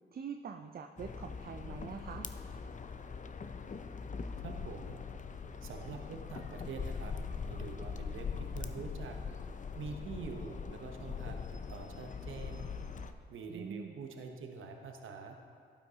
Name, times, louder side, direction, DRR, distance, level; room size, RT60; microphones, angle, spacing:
voice 1, 0.1-2.3 13.5-14.0, right 6 dB, 45° right, 6 dB, 0.5 m, -44 dB
sound 1, 1.0-13.1, left 5 dB, 35° left, 0.6 m, -42 dB
voice 2, 4.4-5.0 5.6-7.1 7.5-9.2 9.7-12.6 13.3-15.4, right 4 dB, 70° right, 4 dB, 1.0 m, -45 dB
12.0 x 9.0 x 2.9 m, 2.1 s
supercardioid pair, 50°, 21 cm